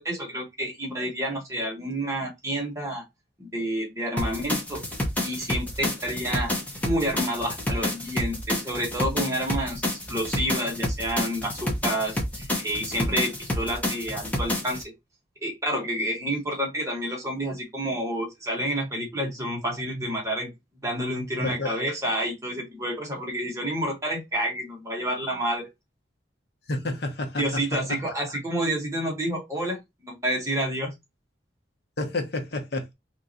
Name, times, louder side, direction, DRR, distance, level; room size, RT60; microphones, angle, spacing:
voice 1, 0.0-3.1 3.4-4.8 5.2-6.5 6.8-9.8 10.1-14.9 15.4-20.5 20.8-25.7 27.4-30.9, equal, 15° right, 1.1 m, -29 dB
sound 1, 4.2-14.8, left 1 dB, 10° left, 0.7 m, -29 dB
voice 2, 21.4-21.7 26.7-27.4 32.0-32.9, left 2 dB, 60° left, 0.8 m, -29 dB
3.0 x 2.5 x 3.9 m
head